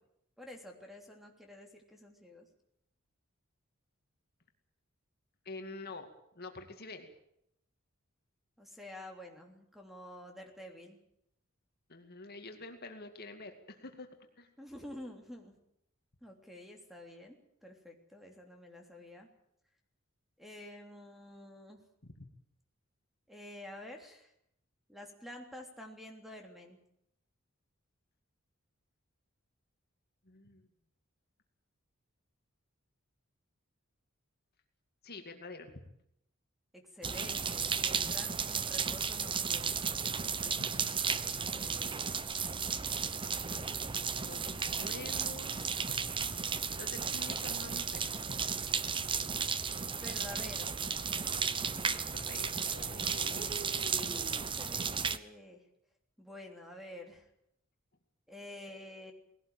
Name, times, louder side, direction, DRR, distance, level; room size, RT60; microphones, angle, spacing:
voice 1, 0.4-2.5 8.6-11.0 14.6-15.5 16.2-19.3 20.4-21.8 23.3-24.3 24.9-26.8 36.7-39.9 41.4-42.0 50.0-50.9 53.3-55.6 56.2-57.3 58.3-59.1, left 1 dB, ahead, 3 dB, 3.2 m, -49 dB
voice 2, 5.5-6.1 6.4-7.1 11.9-14.1 14.4-14.5 22.0-22.2 30.2-30.7 35.0-35.7 40.4-41.0 44.3-46.0 46.7-48.4 52.1-53.5, left 2 dB, 50° left, 5 dB, 2.4 m, -47 dB
sound 1, 37.0-55.2, right 6 dB, 25° right, 0.9 m, -34 dB
20.0 x 17.5 x 8.9 m, 0.75 s
head